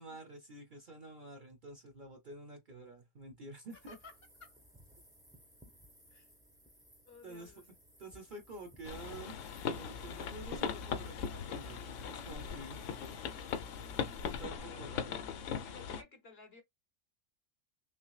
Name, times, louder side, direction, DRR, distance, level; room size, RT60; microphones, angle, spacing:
voice 1, 0.0-4.0 7.2-7.5 8.0-9.4 9.7-12.8 14.4-15.2, right 2 dB, 45° right, 0.8 m, -49 dB
sound 1, 3.7-14.5, equal, 5° right, 0.5 m, -63 dB
voice 2, 7.0-7.7 13.8-15.2 15.6-16.6, left 3 dB, 50° left, 1.2 m, -56 dB
sound 2, 8.8-16.0, left 7 dB, 70° left, 0.9 m, -39 dB
6.1 x 2.1 x 2.3 m
omnidirectional pair, 1.4 m